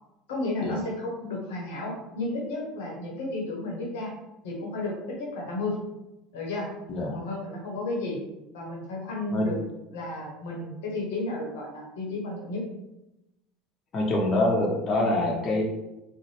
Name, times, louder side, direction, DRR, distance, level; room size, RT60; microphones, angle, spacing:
voice 1, 0.3-4.1 4.4-5.8 6.3-6.7 7.1-8.2 8.5-9.6 9.9-12.6, left 2 dB, 75° left, -1 dB, 0.8 m, -32 dB
voice 2, 13.9-15.6, left 1 dB, 45° left, -1 dB, 0.8 m, -25 dB
3.9 x 2.1 x 3.2 m, 0.93 s
hypercardioid pair, 80°, 0 cm